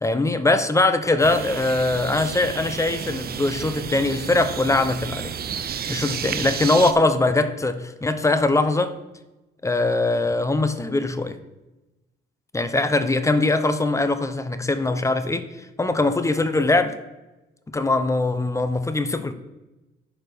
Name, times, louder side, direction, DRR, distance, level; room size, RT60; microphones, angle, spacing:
voice 1, 0.0-5.3 5.9-8.9 9.6-11.4 12.5-15.4 15.8-16.9 17.7-19.3, left 2 dB, 15° left, 10 dB, 0.7 m, -21 dB
sound 1, 1.2-6.9, right 8 dB, 50° right, 0.7 m, -31 dB
10.5 x 4.4 x 5.2 m, 1.0 s
cardioid pair, 90°, 20 cm